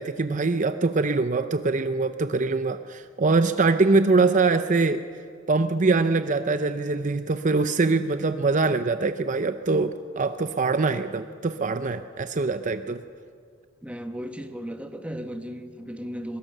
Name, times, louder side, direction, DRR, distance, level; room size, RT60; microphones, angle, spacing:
voice 1, 0.0-5.0 5.5-13.0, right 3 dB, 40° right, 10 dB, 0.6 m, -23 dB
voice 2, 13.8-16.4, equal, 5° right, 6 dB, 1.2 m, -35 dB
23.0 x 22.5 x 6.7 m, 2.2 s
head